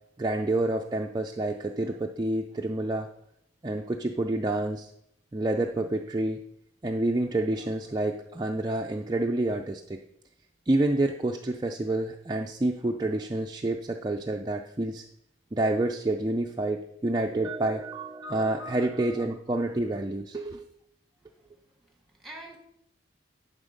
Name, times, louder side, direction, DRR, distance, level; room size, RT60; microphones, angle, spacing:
voice 1, 0.2-3.1 3.6-4.9 5.3-6.4 6.8-10.0 10.7-15.0 15.5-20.7, right 2 dB, 20° right, 2 dB, 0.4 m, -28 dB
voice 2, 18.4-18.9 19.2-19.3 21.2-21.5 22.2-22.6, right 1 dB, ahead, 1 dB, 1.4 m, -47 dB
11.0 x 4.1 x 5.1 m, 0.77 s
head